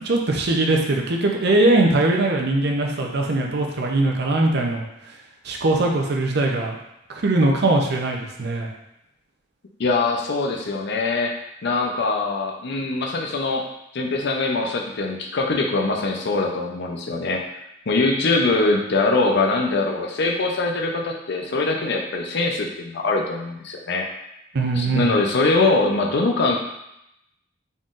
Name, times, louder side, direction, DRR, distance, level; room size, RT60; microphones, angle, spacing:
voice 1, 0.0-4.9 5.4-6.8 7.1-8.7 24.5-25.1, right 2 dB, 60° right, 1 dB, 0.6 m, -21 dB
voice 2, 9.8-11.3 11.6-13.6 13.9-17.4 17.9-24.0 24.7-26.6, left 3 dB, 60° left, 1 dB, 0.5 m, -22 dB
4.0 x 3.7 x 2.5 m, 0.83 s
head